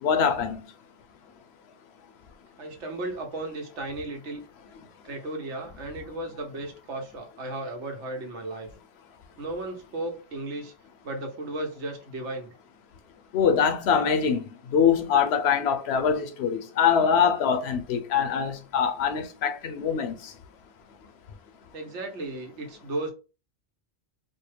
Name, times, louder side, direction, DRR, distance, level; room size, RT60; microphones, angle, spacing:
voice 1, 0.0-0.6 13.3-14.4 14.7-20.1, left 7 dB, 70° left, 0.8 m, -23 dB
voice 2, 2.6-4.4 5.0-8.7 9.4-10.7 11.0-12.5 21.7-23.1, right 2 dB, 85° right, 1.2 m, -35 dB
4.4 x 2.1 x 3.2 m
omnidirectional pair, 1.2 m